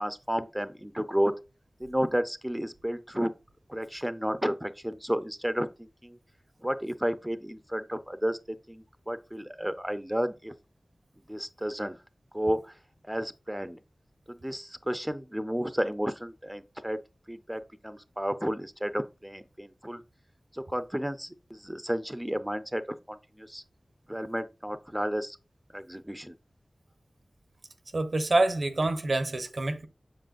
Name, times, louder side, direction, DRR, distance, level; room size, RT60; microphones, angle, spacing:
voice 1, 0.0-1.3 1.8-3.3 3.7-6.2 6.6-8.4 8.7-10.5 11.3-12.0 12.3-12.7 13.1-13.8 14.3-17.0 17.3-20.0 20.5-23.6 24.1-25.4 25.7-26.3, equal, 10° right, 0.6 m, -32 dB
voice 2, 27.9-29.9, right 2 dB, 70° right, 1.1 m, -26 dB
7.7 x 7.0 x 2.6 m
wide cardioid pair, 50°, 0 cm